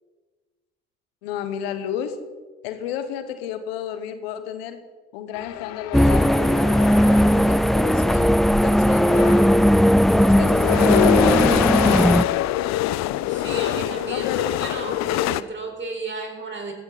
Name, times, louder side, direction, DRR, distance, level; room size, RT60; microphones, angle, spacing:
voice 1, 1.2-2.2 2.6-4.8 5.1-8.4 8.6-9.4 10.1-12.3 14.1-14.6, left 9 dB, 85° left, 10 dB, 1.0 m, -33 dB
sound 1, 5.3-7.6 8.5-8.6 8.9-15.4, left 14 dB, 65° left, 0.6 m, -25 dB
sound 2, 5.9-12.2, equal, ahead, 0.5 m, -17 dB
voice 2, 13.3-16.7, right 3 dB, 40° right, 1 dB, 4.6 m, -33 dB
15.0 x 15.0 x 4.0 m, 1.4 s
hypercardioid pair, 50°, 29 cm